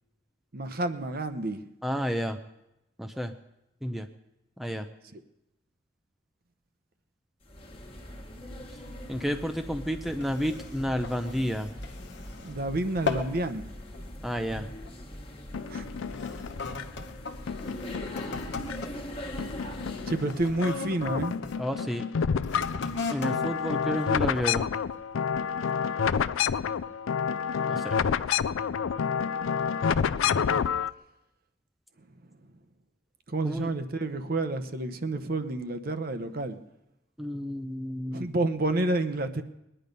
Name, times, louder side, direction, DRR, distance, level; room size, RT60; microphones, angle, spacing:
voice 1, 0.5-1.6 5.1-5.2 12.4-13.7 15.7-15.9 20.1-21.4 33.3-36.6 38.1-39.4, right 2 dB, 50° right, 0.9 m, -29 dB
voice 2, 1.8-2.4 3.0-3.3 3.8-4.1 4.6-4.9 9.1-11.7 14.2-14.7 21.6-22.0 23.1-24.7 27.7-28.0 33.4-33.7 37.2-38.3, equal, ahead, 0.5 m, -31 dB
sound 1, 7.4-20.4, equal, 30° left, 1.5 m, -41 dB
sound 2, 10.0-12.6 12.9-13.4 13.8-14.1 14.8-15.0 15.8-21.6 22.4-24.7 25.3-25.4, left 4 dB, 60° left, 1.1 m, -38 dB
sound 3, 15.5-17.0 17.5-19.0 19.4-20.7 21.0-30.9, left 7 dB, 80° left, 0.4 m, -29 dB
21.0 x 10.0 x 5.3 m
head